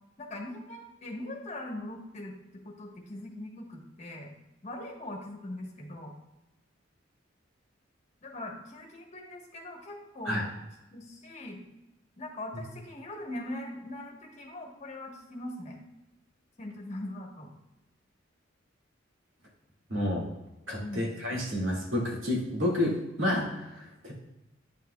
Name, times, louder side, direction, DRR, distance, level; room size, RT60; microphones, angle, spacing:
voice 1, 0.2-2.3 2.6-4.3 4.6-6.1 8.2-10.5 10.9-11.6 12.2-15.9 16.6-17.5 20.0-20.1 20.8-21.4, left 1 dB, 35° left, 1 dB, 1.2 m, -41 dB
voice 2, 19.9-20.2 20.7-23.6 24.0-24.1, left 1 dB, 85° right, -2 dB, 2.1 m, -29 dB
9.1 x 5.9 x 2.3 m, 0.97 s
head